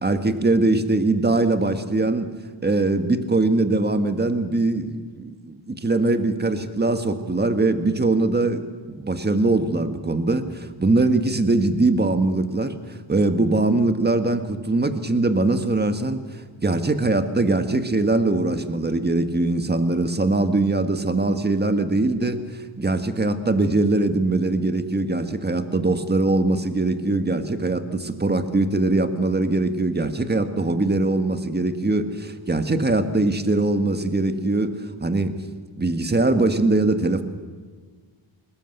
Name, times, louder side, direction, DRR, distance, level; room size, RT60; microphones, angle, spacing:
voice 1, 0.0-2.3 2.6-8.6 8.9-35.3 35.8-37.2, right 2 dB, 20° right, 8 dB, 1.7 m, -22 dB
21.0 x 19.5 x 8.1 m, 1.5 s
cardioid pair, 75°, 47 cm